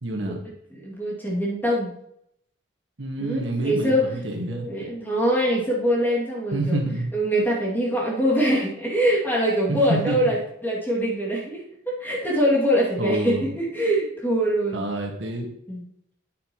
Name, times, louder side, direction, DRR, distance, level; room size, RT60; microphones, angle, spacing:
voice 1, 0.0-0.4 3.0-4.7 6.5-7.1 9.7-10.3 13.0-13.5 14.7-15.5, right 1 dB, 75° right, 2 dB, 1.8 m, -27 dB
voice 2, 0.7-1.9 3.2-4.1 4.5-6.8 7.1-14.8 15.7-15.8, equal, 10° left, -5 dB, 2.5 m, -23 dB
9.3 x 8.5 x 3.1 m, 0.75 s
head